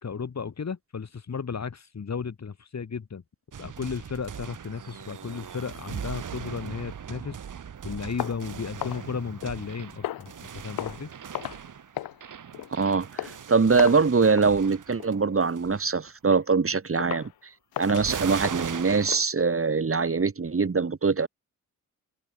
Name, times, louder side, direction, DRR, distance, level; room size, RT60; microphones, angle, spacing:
voice 1, 0.0-3.2 3.6-7.4 7.8-11.1, left 6 dB, 50° left, 3.3 m, -34 dB
sound 1, 3.5-15.1 15.4-15.9 17.8-19.2, right 8 dB, 60° right, 2.5 m, -39 dB
sound 2, 8.2-9.7 10.0-10.4 10.8-11.1 11.3-11.7 12.0-12.2 12.5-12.8 13.2-13.4 13.8-14.1 14.4-14.6 15.0-15.2 15.7-15.8 16.3-16.4 17.0-17.3 17.7-19.2, left 13 dB, 90° left, 1.7 m, -36 dB
voice 2, 12.8-17.3 17.8-21.3, right 4 dB, 40° right, 3.3 m, -23 dB
open air
cardioid pair, 55°, 35 cm